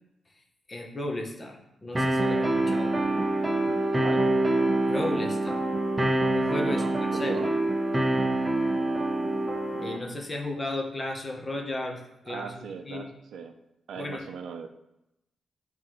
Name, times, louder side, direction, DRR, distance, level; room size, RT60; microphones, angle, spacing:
voice 1, 0.7-3.0 4.8-5.7 6.3-6.8 7.1-7.4 9.8-12.0 12.2-13.1 14.0-14.3, left 1 dB, 20° left, 2 dB, 0.8 m, -34 dB
sound 1, 1.9-10.0, right 1 dB, 10° right, 0.6 m, -25 dB
voice 2, 6.7-7.5 12.3-13.5 13.9-14.7, right 6 dB, 70° right, 7 dB, 0.5 m, -39 dB
9.2 x 3.7 x 3.0 m, 0.87 s
wide cardioid pair, 170°, 0 cm